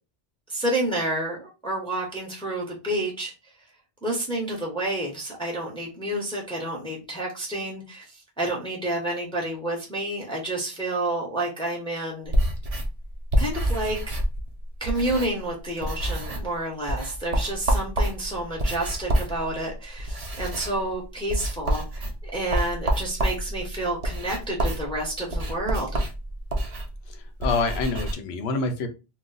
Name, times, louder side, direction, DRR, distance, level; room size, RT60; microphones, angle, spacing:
voice 1, 0.5-3.5 4.0-12.3 13.4-14.0 14.8-26.0, right 1 dB, 5° left, -1 dB, 0.8 m, -29 dB
sound 1, 12.3-15.5 15.8-16.6 16.9-28.1, right 1 dB, 40° right, 0.6 m, -28 dB
voice 2, 27.1-28.9, left 3 dB, 90° left, 8 dB, 0.9 m, -27 dB
2.4 x 2.2 x 3.8 m, 0.29 s
omnidirectional pair, 1.0 m